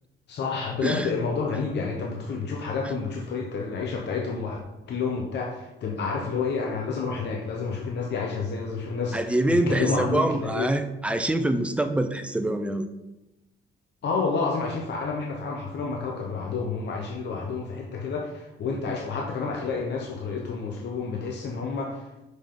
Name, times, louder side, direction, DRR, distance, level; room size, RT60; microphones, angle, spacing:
voice 1, 0.3-4.6 4.9-10.7 14.0-22.2, left 4 dB, 60° left, 0 dB, 1.0 m, -29 dB
voice 2, 9.1-12.9, right 1 dB, 5° right, 8 dB, 0.6 m, -25 dB
6.1 x 5.3 x 3.9 m, 0.98 s
cardioid pair, 90°, 20 cm